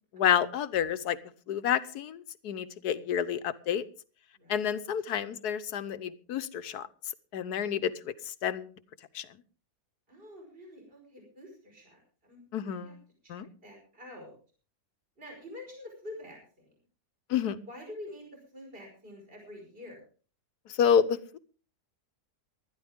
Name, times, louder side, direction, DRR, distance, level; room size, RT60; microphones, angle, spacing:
voice 1, 0.1-1.2 1.5-3.9 4.5-6.9 7.3-8.7 9.1-9.3 12.5-12.9 13.3-13.5 17.3-17.6 20.7-21.4, left 8 dB, 80° left, 14 dB, 1.4 m, -29 dB
voice 2, 10.1-12.9 13.2-13.3 13.6-14.4 15.2-16.7 17.4-20.0, left 1 dB, 35° right, 1 dB, 5.4 m, -47 dB
19.5 x 12.5 x 3.6 m, 0.39 s
omnidirectional pair, 1.7 m